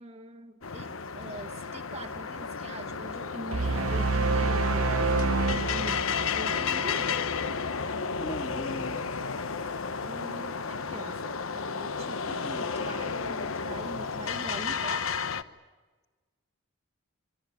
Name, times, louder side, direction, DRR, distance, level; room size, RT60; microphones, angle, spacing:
voice 1, 0.0-5.2 5.5-7.1 10.0-15.2, right 1 dB, 30° right, 2 dB, 1.5 m, -43 dB
sound 1, 0.6-15.4, left 5 dB, 75° left, 1.0 m, -32 dB
sound 2, 3.5-6.8, right 3 dB, 85° right, 0.9 m, -27 dB
voice 2, 8.1-9.1, equal, 35° left, 3 dB, 2.7 m, -38 dB
26.0 x 23.5 x 9.4 m, 1.3 s
head